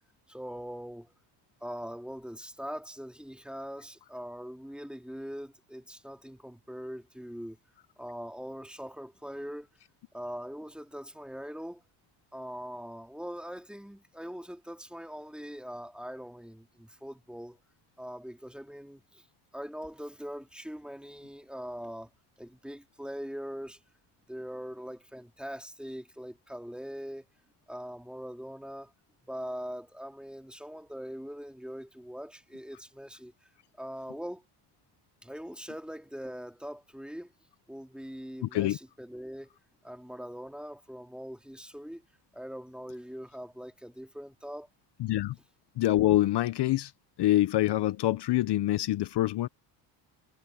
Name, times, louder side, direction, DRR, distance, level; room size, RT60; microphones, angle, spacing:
voice 1, 0.3-1.1 1.6-7.6 8.0-9.7 10.1-11.8 12.3-17.6 18.0-19.3 19.5-22.1 22.4-23.8 24.3-27.3 27.7-28.9 29.3-33.3 33.8-34.4 35.2-37.3 37.7-39.5 39.8-42.0 42.3-44.7, equal, ahead, 3.4 m, -42 dB
voice 2, 38.4-38.8 45.0-45.4 45.8-46.9 47.2-49.5, left 15 dB, 55° left, 0.9 m, -25 dB
supercardioid pair, 85°, 48 cm